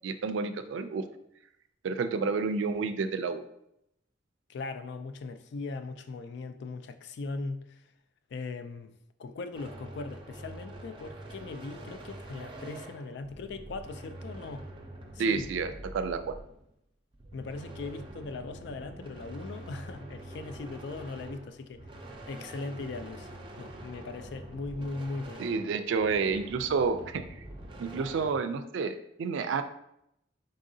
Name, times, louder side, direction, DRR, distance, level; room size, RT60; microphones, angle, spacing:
voice 1, 0.0-1.0 1.8-3.4 15.2-16.4 25.4-27.2 27.8-29.6, right 5 dB, 90° right, 0.3 m, -30 dB
voice 2, 4.5-7.8 8.3-8.9 9.2-14.6 15.1-15.5 17.3-21.9 22.3-23.3 23.6-25.4, left 3 dB, 65° left, 0.3 m, -39 dB
sound 1, 9.5-16.7 17.1-28.3, right 1 dB, 30° right, 0.5 m, -45 dB
4.0 x 3.7 x 2.6 m
head